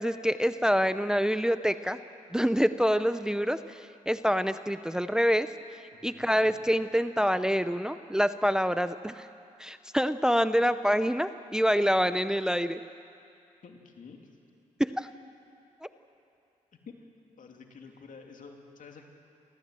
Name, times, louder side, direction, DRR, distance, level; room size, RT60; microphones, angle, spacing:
voice 1, 0.0-2.0 2.3-9.3 9.6-12.8 14.8-15.1 15.8-15.9, equal, 5° right, 12 dB, 0.6 m, -26 dB
voice 2, 5.9-6.5 13.6-14.2 16.9-17.0 17.4-19.1, left 5 dB, 65° left, 3 dB, 2.6 m, -49 dB
28.0 x 14.0 x 7.7 m, 2.5 s
cardioid pair, 60°, 14 cm